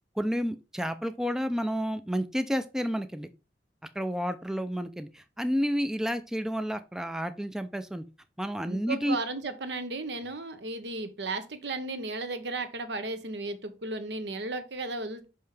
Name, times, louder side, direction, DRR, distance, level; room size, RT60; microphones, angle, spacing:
voice 1, 0.2-3.3 4.0-8.0 8.4-9.2, equal, 5° right, 10 dB, 0.4 m, -30 dB
voice 2, 8.6-15.3, right 3 dB, 75° right, 9 dB, 1.0 m, -35 dB
5.6 x 5.4 x 3.3 m, 0.30 s
head